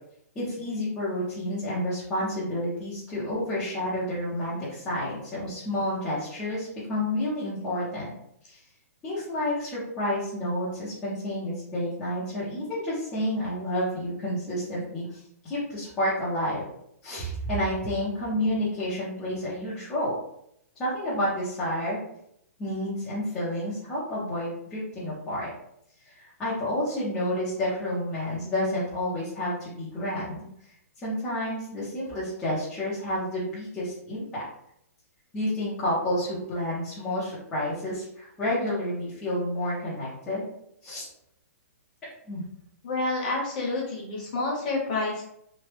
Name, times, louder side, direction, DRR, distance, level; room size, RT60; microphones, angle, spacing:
voice 1, 0.4-8.1 8.4-8.6 9.0-16.6 17.0-20.2 20.8-22.0 22.6-25.5 26.1-30.4 31.0-34.4 35.3-40.5 40.8-41.1 42.3-42.4, left 1 dB, 5° left, -11 dB, 0.5 m, -30 dB
voice 2, 42.8-45.2, left 2 dB, 30° left, -3 dB, 0.8 m, -28 dB
3.0 x 2.1 x 3.1 m, 0.74 s
hypercardioid pair, 180°, 8 cm